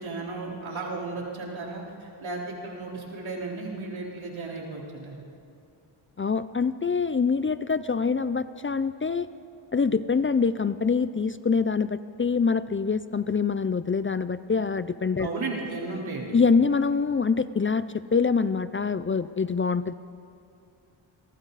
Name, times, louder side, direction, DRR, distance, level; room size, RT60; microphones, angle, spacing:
voice 1, 0.0-5.2 15.2-16.3, right 3 dB, 85° right, -3 dB, 4.2 m, -34 dB
voice 2, 6.2-9.3 9.7-15.3 16.3-19.9, left 5 dB, 30° left, 14 dB, 0.5 m, -25 dB
27.5 x 23.0 x 4.1 m, 2.5 s
wide cardioid pair, 95°, 46 cm